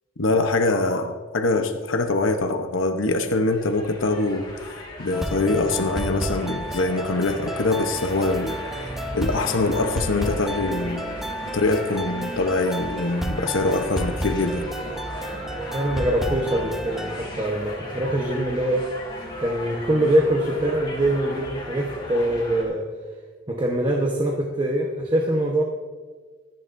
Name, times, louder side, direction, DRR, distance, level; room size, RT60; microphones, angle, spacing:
voice 1, 0.2-11.1 11.5-14.6, left 2 dB, 80° left, 6 dB, 0.9 m, -24 dB
sound 1, 3.5-22.6, left 1 dB, 25° left, 3.5 m, -36 dB
sound 2, 5.1-17.2, right 1 dB, ahead, 0.7 m, -32 dB
voice 2, 15.5-18.8 19.4-22.9 23.5-25.6, right 1 dB, 25° right, 1 dB, 1.1 m, -23 dB
25.5 x 10.5 x 2.7 m, 1.4 s
head